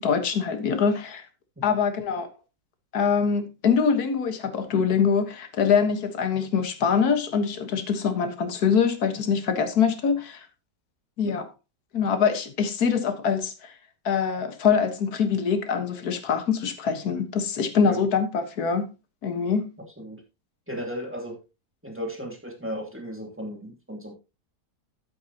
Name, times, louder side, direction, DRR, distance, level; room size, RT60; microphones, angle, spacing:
voice 1, 0.0-1.3 1.6-2.3 2.9-10.5 11.2-11.4 11.9-13.7 14.0-18.9 19.2-19.7, left 6 dB, 60° left, 1.9 m, -24 dB
voice 2, 20.7-21.4 21.8-24.1, equal, 5° right, 2.7 m, -35 dB
12.0 x 8.3 x 2.9 m
omnidirectional pair, 1.9 m